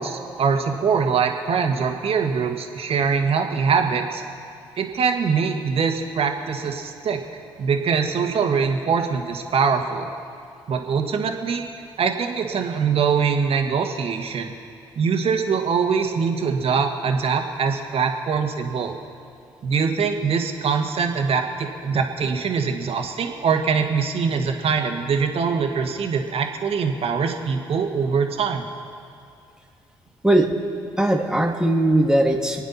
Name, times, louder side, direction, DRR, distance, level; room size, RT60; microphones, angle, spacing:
voice 1, 0.0-4.2 4.8-7.2 7.6-10.1 10.7-11.6 12.0-14.5 15.0-19.0 19.6-28.6, right 5 dB, 55° right, 4 dB, 1.8 m, -23 dB
voice 2, 31.0-32.6, right 1 dB, 5° right, 1 dB, 2.5 m, -19 dB
27.5 x 9.4 x 4.3 m, 2.4 s
hypercardioid pair, 45°, 12 cm